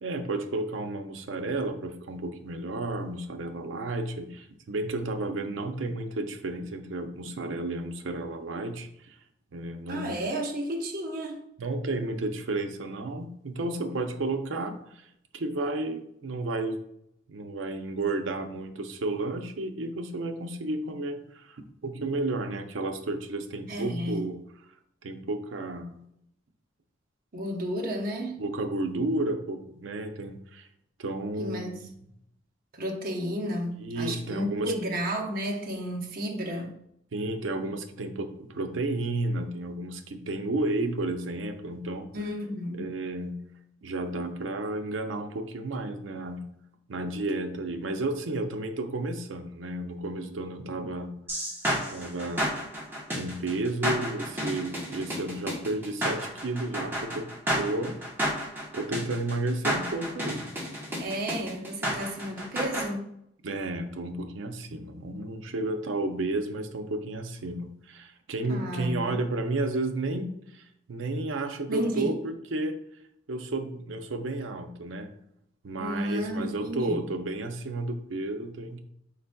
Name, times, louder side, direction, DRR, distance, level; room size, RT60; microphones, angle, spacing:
voice 1, 0.0-9.2 9.5-10.2 11.6-14.8 15.3-16.8 17.3-24.4 25.0-26.0 28.4-30.7 31.0-31.9 33.8-34.7 37.1-42.1 42.8-43.4 43.8-46.5 46.9-51.4 51.9-52.6 53.1-57.3 57.5-58.0 58.7-60.5 63.4-70.6 70.9-72.8 73.3-75.1 75.6-78.8, right 2 dB, 80° right, 6 dB, 0.5 m, -32 dB
voice 2, 9.9-11.4 23.7-24.3 27.3-28.4 31.4-31.8 32.7-36.7 42.1-42.9 61.0-63.1 68.5-69.2 71.7-72.2 75.8-77.1, equal, 50° right, 0 dB, 0.8 m, -32 dB
sound 1, 51.3-62.9, equal, 10° right, 1.0 m, -31 dB
5.1 x 4.0 x 2.2 m, 0.74 s
head